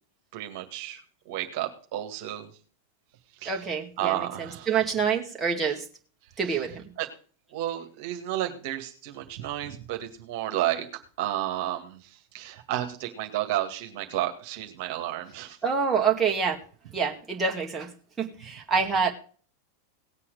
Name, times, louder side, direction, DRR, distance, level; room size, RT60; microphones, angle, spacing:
voice 1, 0.3-2.5 3.4-4.8 6.4-6.6 7.0-7.1 7.5-10.9 11.2-15.6, right 13 dB, 45° right, 5 dB, 2.0 m, -32 dB
voice 2, 3.5-5.8 6.4-6.8 15.6-16.6 16.9-17.9 18.2-19.1, right 6 dB, 15° right, -1 dB, 2.2 m, -26 dB
18.0 x 8.4 x 5.0 m, 0.42 s
figure-of-eight pair, 90°, 0 cm